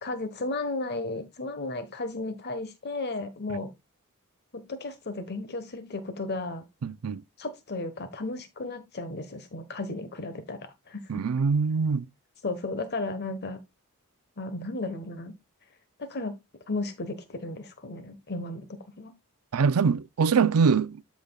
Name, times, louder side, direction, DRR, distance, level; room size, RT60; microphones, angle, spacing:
voice 1, 0.0-3.7 4.5-6.6 7.4-11.0 12.4-13.6 14.4-15.3 16.0-16.4 16.7-18.7 19.0-19.1, left 2 dB, 50° left, 1.2 m, -34 dB
voice 2, 6.8-7.2 11.1-12.1 19.5-21.0, right 5 dB, 75° right, 0.5 m, -23 dB
13.5 x 5.1 x 2.3 m
head